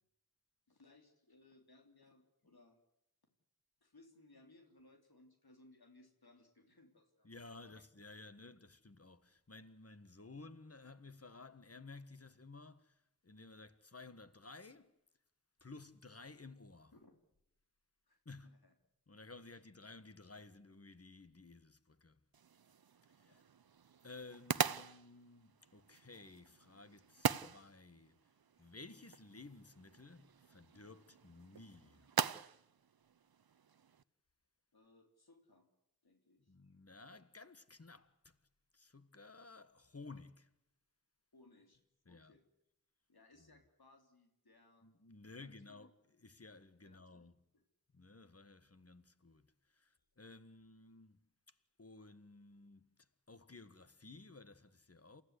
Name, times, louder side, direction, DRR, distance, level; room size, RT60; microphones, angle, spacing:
voice 1, 0.7-2.8 3.8-7.3 7.6-7.8 8.4-8.6 16.9-17.1 18.1-18.2 18.6-18.7 19.5-19.6 23.3-23.5 24.5-24.6 28.5-28.7 34.7-35.7 36.0-36.5 41.3-42.4 43.1-44.9 45.4-45.9 46.8-47.3 47.5-47.6 50.0-50.1, left 2 dB, 85° left, 3.3 m, -65 dB
voice 2, 7.2-14.9 15.6-16.9 18.2-18.5 19.1-22.2 23.1-23.4 24.0-28.3 28.6-32.1 36.5-38.4 38.7-40.5 42.0-42.3 44.8-47.3 47.9-55.2, left 3 dB, 40° left, 1.5 m, -55 dB
sound 1, 22.3-34.0, right 7 dB, 80° right, 0.8 m, -42 dB
28.5 x 15.5 x 8.2 m
wide cardioid pair, 50°, 36 cm